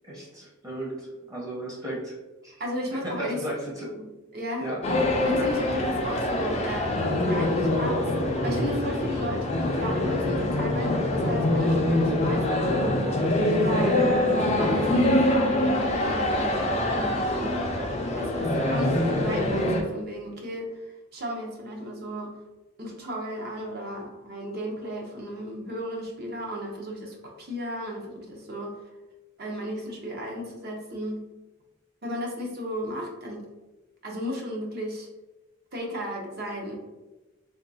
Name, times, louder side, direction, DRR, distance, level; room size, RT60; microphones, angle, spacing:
voice 1, 0.0-2.1 2.4-2.5 2.9-3.9 4.6-5.2, right 1 dB, 15° right, -4 dB, 0.7 m, -35 dB
voice 2, 2.6-3.4 3.9-4.1 4.3-4.7 5.2-13.0 13.6-17.6 18.1-22.4 22.8-28.8 29.4-31.2 32.0-33.5 34.0-35.1 35.7-36.8, equal, 50° right, -1 dB, 0.7 m, -34 dB
sound 1, 4.8-19.8, left 1 dB, 30° left, 0.3 m, -24 dB
3.6 x 2.3 x 2.7 m, 1.1 s
head